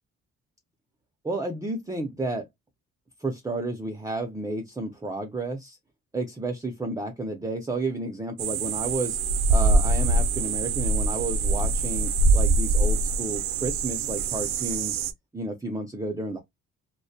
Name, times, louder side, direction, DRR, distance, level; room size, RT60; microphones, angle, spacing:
voice 1, 1.2-2.4 3.2-5.8 6.1-9.2 9.5-15.0 15.3-16.4, right 2 dB, 10° right, 0.4 m, -31 dB
sound 1, 8.4-15.1, right 2 dB, 65° right, 0.5 m, -24 dB
2.2 x 2.1 x 2.6 m
cardioid pair, 90°, 30 cm